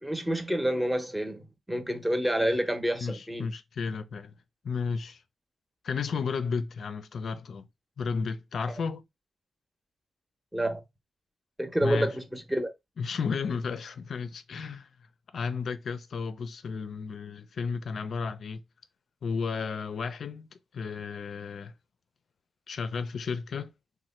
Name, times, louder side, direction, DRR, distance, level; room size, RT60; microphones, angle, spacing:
voice 1, 0.0-3.5 10.5-10.8 11.6-12.7, right 1 dB, 5° right, 0.7 m, -28 dB
voice 2, 3.0-4.4 4.6-5.2 5.8-7.7 8.0-9.0 11.8-12.1 13.0-14.9 15.3-18.6 19.2-20.5 20.7-21.7 22.7-23.7, left 5 dB, 65° left, 0.4 m, -33 dB
3.1 x 2.1 x 4.1 m
wide cardioid pair, 105°, 0 cm